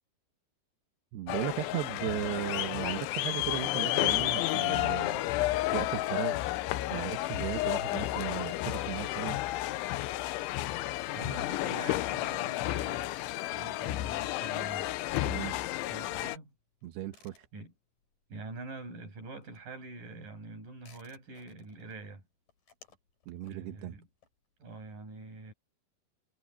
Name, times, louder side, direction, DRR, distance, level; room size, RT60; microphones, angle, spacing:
voice 1, 1.1-5.2 5.6-6.4 6.9-9.4 15.2-15.6 16.8-17.5 23.3-24.0, right 13 dB, 75° right, 2.6 m, -36 dB
sound 1, 1.3-16.4, left 16 dB, 80° left, 2.9 m, -32 dB
voice 2, 11.1-13.1 13.5-14.9 15.9-16.5 17.5-17.7 18.3-22.2 23.4-24.1 24.6-25.5, right 3 dB, 40° right, 8.3 m, -45 dB
sound 2, 13.1-18.8 19.0-24.8, left 5 dB, 40° left, 6.5 m, -63 dB
omnidirectional pair, 6.0 m